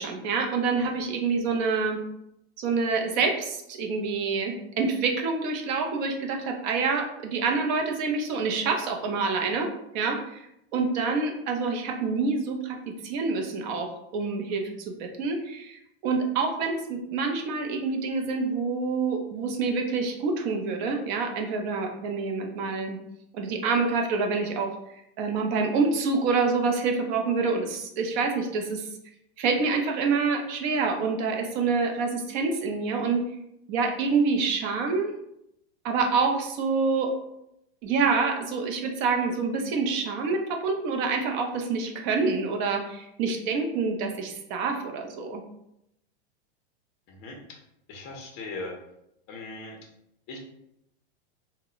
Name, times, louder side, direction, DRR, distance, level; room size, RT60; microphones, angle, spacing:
voice 1, 0.0-2.0 2.6-10.5 10.7-12.8 13.0-23.0 23.3-24.7 25.2-28.9 29.4-33.2 33.7-35.1 35.8-37.1 37.8-45.4, right 4 dB, 45° right, 3 dB, 0.5 m, -27 dB
voice 2, 47.1-47.6 47.9-48.7 49.3-49.8 50.3-50.4, left 2 dB, 35° left, 1 dB, 0.5 m, -39 dB
2.1 x 2.0 x 3.7 m, 0.81 s
supercardioid pair, 140°, 34 cm